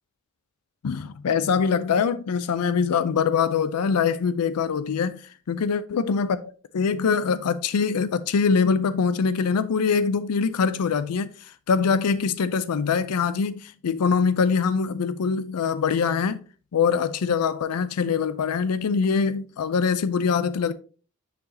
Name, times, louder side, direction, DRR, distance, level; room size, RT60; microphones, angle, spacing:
voice 1, 0.8-5.2 5.5-6.4 6.7-16.4 16.7-20.7, left 6 dB, 90° left, 0.4 m, -23 dB
9.3 x 4.8 x 2.7 m
head